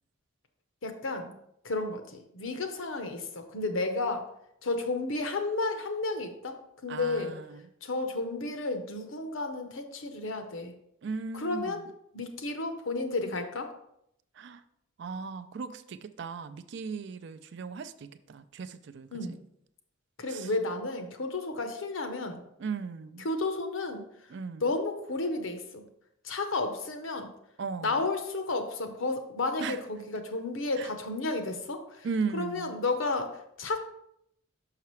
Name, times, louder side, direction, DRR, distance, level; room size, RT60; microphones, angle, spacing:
voice 1, 0.8-1.3 1.6-4.3 4.6-7.3 7.8-10.7 11.3-11.8 12.1-13.7 19.1-19.4 20.2-22.4 23.2-24.0 24.6-25.8 26.2-27.3 27.8-32.1 32.3-33.3 33.6-33.8, left 3 dB, 70° left, 7 dB, 0.8 m, -32 dB
voice 2, 6.9-7.6 11.0-11.9 14.4-14.6 15.0-19.4 20.3-20.5 22.6-23.3 24.3-24.6 27.6-28.0 29.6-29.8 30.8-30.9 32.0-32.8, right 5 dB, 55° right, 12 dB, 0.4 m, -37 dB
5.8 x 5.7 x 3.1 m, 0.76 s
head